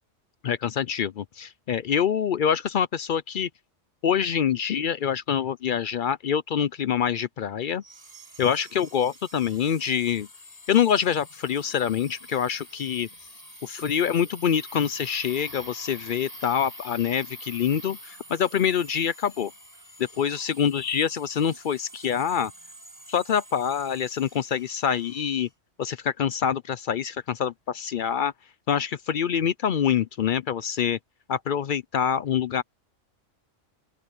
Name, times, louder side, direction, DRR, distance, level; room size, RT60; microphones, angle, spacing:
voice 1, 0.4-3.5 4.0-7.8 8.4-10.3 10.7-13.1 13.6-19.5 20.2-22.5 23.1-25.5 25.8-28.3 28.7-31.0 31.3-32.6, left 8 dB, 60° left, 0.6 m, -25 dB
sound 1, 7.8-25.5, equal, 30° left, 7.3 m, -46 dB
open air
omnidirectional pair, 1.3 m